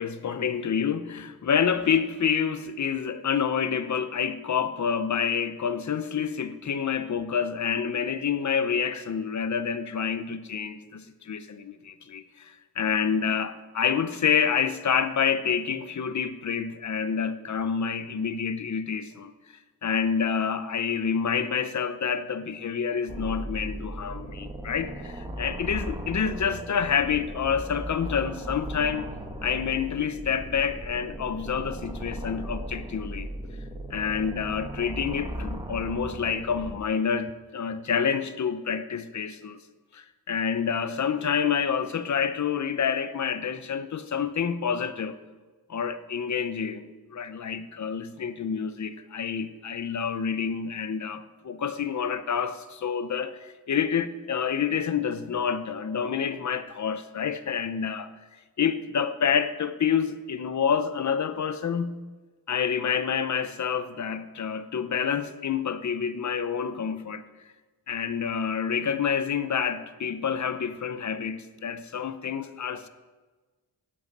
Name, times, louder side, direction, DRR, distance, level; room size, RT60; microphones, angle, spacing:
voice 1, 0.0-19.3 19.8-29.1 29.4-33.3 33.9-39.6 39.9-45.2 45.7-58.1 58.6-62.0 62.5-67.2 67.9-72.9, left 7 dB, 45° left, 11 dB, 0.9 m, -28 dB
sound 1, 23.1-36.8, right 1 dB, 15° right, 1.3 m, -37 dB
16.5 x 9.8 x 5.4 m, 1.3 s
wide cardioid pair, 165°, 40 cm